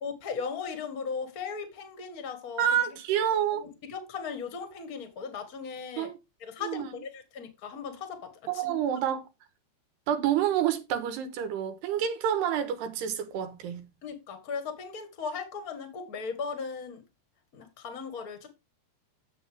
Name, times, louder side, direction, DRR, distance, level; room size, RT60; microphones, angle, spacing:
voice 1, 0.0-2.6 3.5-6.1 6.4-8.8 14.0-17.0 17.5-18.5, left 5 dB, 50° left, 1.1 m, -37 dB
voice 2, 2.6-3.7 6.0-6.2 6.6-6.9 8.5-9.2 10.1-13.9, right 9 dB, 90° right, 3.3 m, -28 dB
10.0 x 7.6 x 3.5 m
omnidirectional pair, 4.6 m